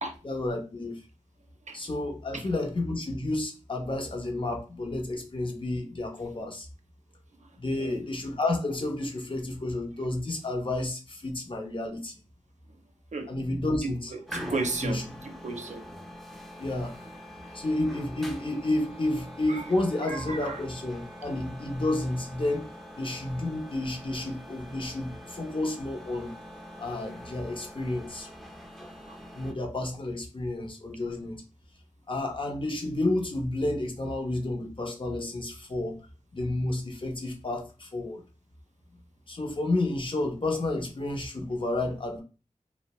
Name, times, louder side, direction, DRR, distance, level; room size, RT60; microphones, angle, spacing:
voice 1, 0.2-1.0 1.7-6.7 7.6-12.2 13.3-14.1 14.8-15.0 16.6-17.0 17.5-22.7 22.9-26.3 26.8-28.3 29.3-31.4 32.1-36.0 36.3-38.2 39.3-42.2, left 2 dB, 45° left, 0.6 m, -31 dB
sound 1, 14.3-29.5, equal, ahead, 0.5 m, -44 dB
voice 2, 14.3-15.8 19.5-19.6 20.1-20.6 29.1-29.2, right 3 dB, 70° right, 0.5 m, -34 dB
2.6 x 2.0 x 2.9 m
wide cardioid pair, 65°, 13 cm